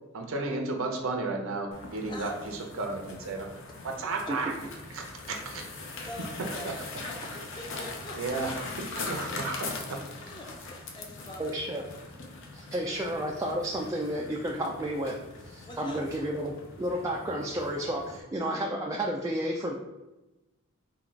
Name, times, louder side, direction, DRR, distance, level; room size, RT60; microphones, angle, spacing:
voice 1, 0.1-3.5 3.8-4.5 4.9-5.6 6.6-6.7 8.2-10.0, right 3 dB, 65° right, 2 dB, 0.7 m, -33 dB
sound 1, 1.7-18.2, left 3 dB, 60° left, 0.6 m, -41 dB
voice 2, 2.1-2.4 5.6-5.8 6.1-6.8 7.1-8.2 10.2-11.8 12.3-13.1 15.7-16.0, left 1 dB, 20° left, 0 dB, 0.6 m, -45 dB
voice 3, 11.4-11.8 12.5-15.2 15.4-19.8, right 1 dB, 15° right, -2 dB, 0.3 m, -31 dB
3.8 x 2.3 x 4.4 m, 1.0 s
head